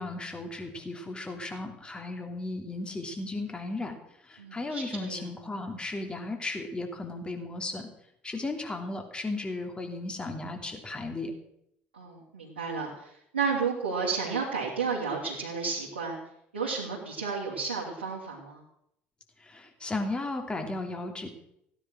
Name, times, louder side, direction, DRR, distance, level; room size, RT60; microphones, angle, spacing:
voice 1, 0.0-4.0 4.3-7.8 8.2-11.3 19.5-21.3, left 2 dB, 15° left, 4 dB, 3.0 m, -35 dB
voice 2, 4.4-5.2 11.9-16.2 16.5-18.6, right 5 dB, 75° right, -4 dB, 2.9 m, -32 dB
16.0 x 10.0 x 6.4 m, 0.76 s
figure-of-eight pair, 60°, 6 cm